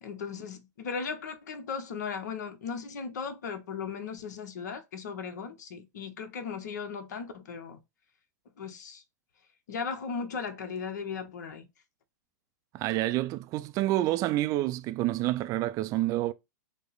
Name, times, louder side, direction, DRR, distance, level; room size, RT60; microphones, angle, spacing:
voice 1, 0.0-7.8 8.6-9.0 9.7-11.7, left 5 dB, 70° left, 0.9 m, -37 dB
voice 2, 12.7-16.3, right 15 dB, 35° right, 0.4 m, -28 dB
5.2 x 2.1 x 3.9 m
hypercardioid pair, 105°, 10 cm